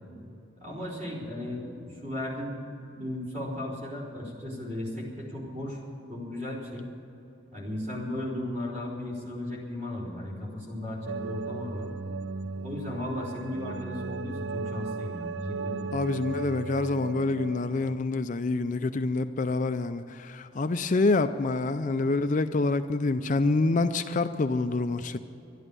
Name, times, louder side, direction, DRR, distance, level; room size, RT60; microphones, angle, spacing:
voice 1, 0.6-2.6 2.9-5.8 6.1-6.9 7.5-11.9 12.6-15.9, left 1 dB, 40° right, 4.0 m, -35 dB
sound 1, 11.1-18.0, right 4 dB, 60° right, 0.5 m, -36 dB
voice 2, 15.9-25.2, left 3 dB, 40° left, 0.4 m, -27 dB
12.5 x 11.0 x 9.6 m
head